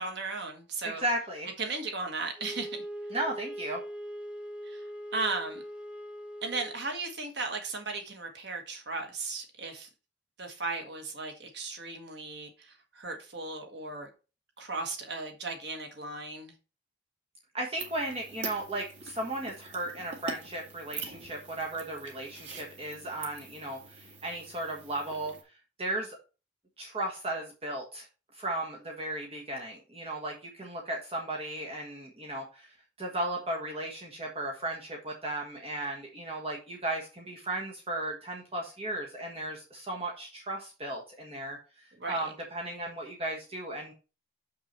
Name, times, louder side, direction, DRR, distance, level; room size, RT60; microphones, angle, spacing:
voice 1, 0.0-1.0 1.6-2.8 4.7-4.8 5.1-5.6 6.4-9.9 10.4-14.1 14.6-16.5 42.0-42.3, right 3 dB, 65° right, 1.5 m, -36 dB
voice 2, 0.8-1.5 3.1-3.8 17.5-25.3 25.8-26.2 26.8-28.1 28.3-43.9, right 1 dB, 30° right, 1.4 m, -35 dB
Wind instrument woodwind instrument, 2.4-6.8, equal, 5° right, 0.7 m, -41 dB
sound 1, 17.8-25.4, right 4 dB, 80° right, 1.9 m, -44 dB
6.7 x 5.9 x 4.3 m
head